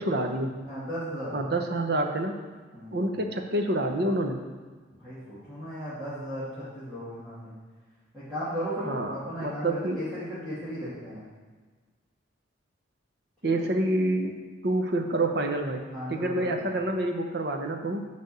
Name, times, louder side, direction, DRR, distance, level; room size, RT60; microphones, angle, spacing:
voice 1, 0.0-0.5 1.3-2.4 2.9-4.4 8.8-10.0 13.4-14.3 14.6-18.1, right 1 dB, 55° right, 4 dB, 0.8 m, -28 dB
voice 2, 0.6-1.4 2.7-3.1 5.0-7.5 8.1-11.2 13.4-13.7 15.9-16.7, equal, ahead, -15 dB, 2.1 m, -36 dB
10.5 x 3.5 x 6.8 m, 1.4 s
head